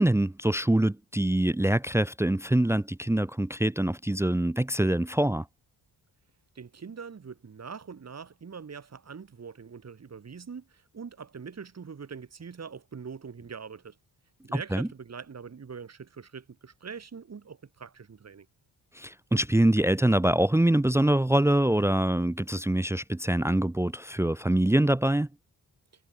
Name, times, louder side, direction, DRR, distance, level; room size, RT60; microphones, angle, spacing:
voice 1, 0.0-5.4 14.5-14.9 18.9-25.3, right 1 dB, 5° right, 0.8 m, -24 dB
voice 2, 6.6-14.0 14.4-18.5, right 6 dB, 40° right, 6.9 m, -43 dB
wide cardioid pair, 165°, 39 cm